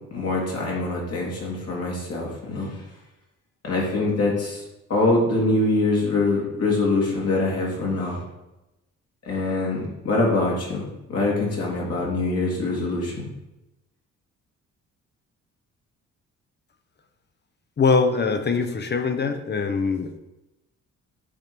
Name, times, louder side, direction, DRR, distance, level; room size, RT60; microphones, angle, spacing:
voice 1, 0.1-2.8 3.6-4.6 4.9-8.2 9.3-13.3, left 2 dB, 55° left, -3 dB, 2.5 m, -24 dB
voice 2, 17.8-20.2, left 4 dB, 35° left, 7 dB, 0.8 m, -22 dB
8.3 x 3.1 x 5.2 m, 0.97 s
cardioid pair, 90°, 30 cm